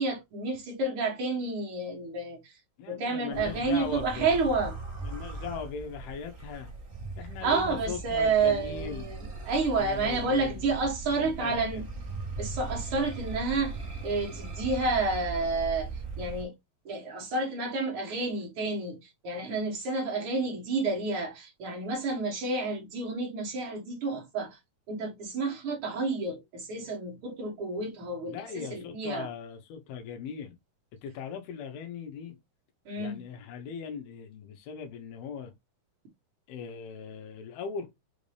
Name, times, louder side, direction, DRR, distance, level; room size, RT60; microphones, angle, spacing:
voice 1, 0.0-2.4 2.9-4.7 7.4-9.2 9.4-11.8 12.4-13.8 14.0-15.9 16.2-16.5 16.8-24.6 24.9-29.3 32.8-33.2, right 3 dB, 60° right, 1.6 m, -30 dB
voice 2, 2.8-4.3 5.0-6.7 7.2-9.1 9.8-10.8 11.1-11.8 28.3-30.6 31.0-32.4 33.0-35.5 36.5-37.9, left 6 dB, 90° left, 2.7 m, -39 dB
sound 1, 3.3-16.4, right 3 dB, 85° right, 0.7 m, -39 dB
5.9 x 2.7 x 3.2 m
omnidirectional pair, 4.3 m